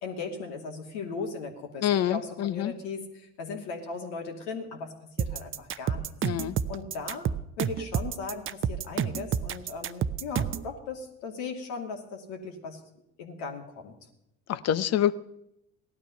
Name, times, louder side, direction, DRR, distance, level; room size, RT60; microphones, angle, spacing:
voice 1, 0.0-6.1 6.7-7.3 7.6-12.8 13.2-13.9, left 4 dB, 70° left, 3 dB, 2.5 m, -38 dB
voice 2, 1.8-2.7 6.2-6.6 14.5-15.1, left 11 dB, 45° left, 15 dB, 0.9 m, -26 dB
sound 1, 5.2-10.7, right 8 dB, 35° right, 0.7 m, -29 dB
17.0 x 12.0 x 5.7 m, 0.83 s
hypercardioid pair, 60°, 35 cm